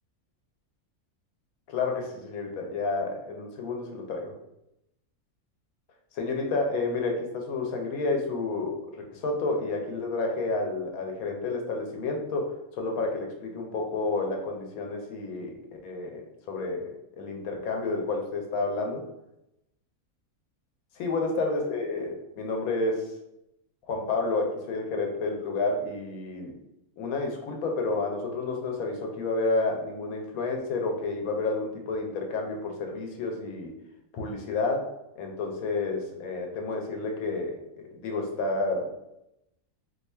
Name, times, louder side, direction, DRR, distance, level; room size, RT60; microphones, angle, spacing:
voice 1, 1.7-4.3 6.1-15.6 15.8-19.0 21.0-23.1 23.9-26.5 27.0-33.7 34.1-34.9 35.2-37.6 38.0-38.9, left 3 dB, 80° left, 2 dB, 1.0 m, -30 dB
2.6 x 2.3 x 4.1 m, 0.86 s
omnidirectional pair, 1.5 m